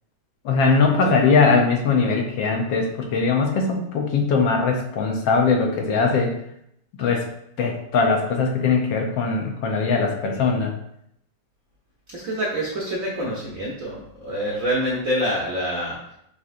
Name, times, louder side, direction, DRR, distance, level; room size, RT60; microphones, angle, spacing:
voice 1, 0.4-6.3 7.0-7.2 7.6-10.7, left 4 dB, 75° left, 2 dB, 1.3 m, -20 dB
voice 2, 12.1-16.0, equal, 65° right, -4 dB, 0.8 m, -26 dB
6.4 x 2.8 x 2.5 m, 0.75 s
omnidirectional pair, 2.3 m